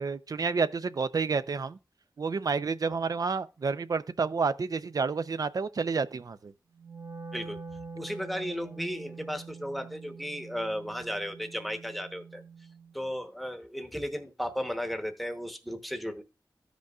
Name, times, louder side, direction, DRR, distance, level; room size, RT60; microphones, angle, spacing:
voice 1, 0.0-1.8 2.2-6.5, right 4 dB, 55° right, 0.4 m, -29 dB
Wind instrument woodwind instrument, 6.7-12.9, right 4 dB, 35° right, 2.0 m, -45 dB
voice 2, 7.9-12.4 12.9-16.2, equal, ahead, 0.9 m, -35 dB
14.0 x 5.1 x 2.3 m
wide cardioid pair, 95°, 7 cm